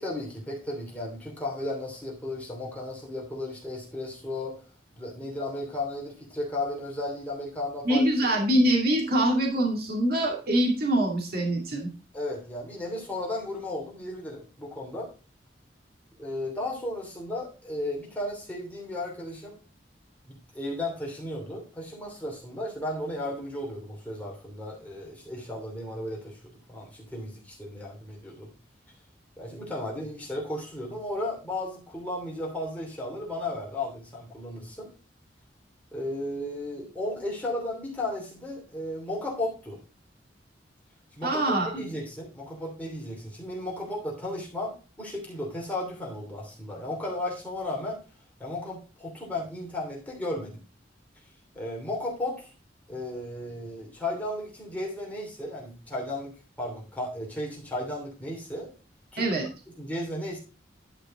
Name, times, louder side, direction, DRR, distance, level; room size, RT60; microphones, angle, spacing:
voice 1, 0.0-4.6 5.0-8.0 12.1-15.1 16.2-19.6 20.3-26.4 26.7-28.5 29.4-34.9 35.9-39.8 41.2-48.0 48.4-50.6 51.5-52.5 52.9-56.3 56.6-58.7 59.1-59.3 59.8-60.4, left 1 dB, 10° left, -3 dB, 2.8 m, -34 dB
voice 2, 7.8-11.9 41.2-41.8 59.2-59.5, right 1 dB, 60° right, 0 dB, 2.4 m, -24 dB
11.5 x 5.0 x 3.7 m, 0.34 s
head